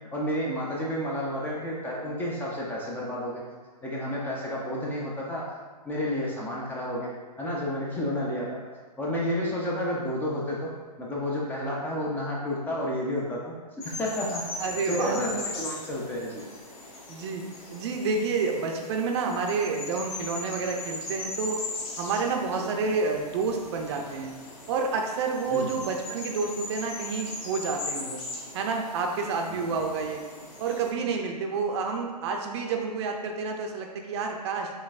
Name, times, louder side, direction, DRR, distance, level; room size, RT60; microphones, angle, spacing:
voice 1, 0.1-3.4 3.8-5.5 5.8-7.1 7.4-8.6 9.0-10.7 11.0-16.4 22.6-22.7 25.5-25.8 29.5-29.8, equal, 10° left, -4 dB, 0.5 m, -31 dB
sound 1, 13.8-30.9, left 2 dB, 35° left, 1.1 m, -39 dB
voice 2, 14.6-15.2 17.1-17.4 17.7-21.6 22.0-24.3 24.7-28.2 28.5-30.2 30.6-34.7, right 4 dB, 40° right, 2 dB, 0.6 m, -29 dB
5.3 x 3.2 x 2.4 m, 1.4 s
hypercardioid pair, 130°, 21 cm